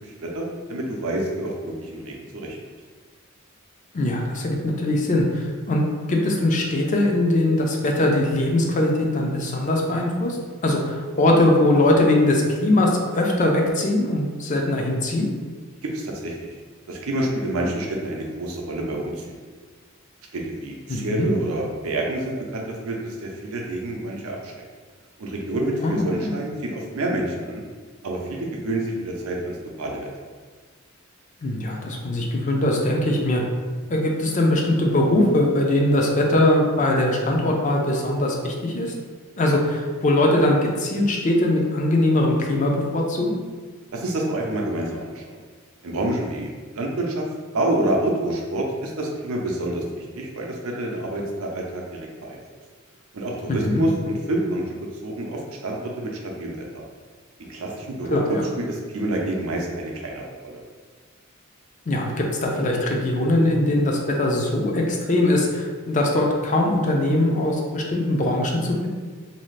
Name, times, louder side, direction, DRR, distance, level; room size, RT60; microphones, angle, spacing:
voice 1, 0.0-0.4 0.7-2.6 15.8-16.5 16.9-19.4 20.3-24.5 25.2-27.6 28.0-30.1 43.9-45.2 45.8-47.3 47.5-51.8 52.2-52.4 53.1-54.6 55.0-56.8 57.4-58.2 58.7-60.6, right 1 dB, 90° right, -1 dB, 0.5 m, -28 dB
voice 2, 3.9-10.4 10.6-15.3 20.9-21.3 25.8-26.3 31.4-33.4 33.9-38.9 39.4-43.4 53.5-53.8 58.1-58.5 61.9-68.9, left 1 dB, 35° left, 0 dB, 0.4 m, -21 dB
2.7 x 2.4 x 3.1 m, 1.5 s
head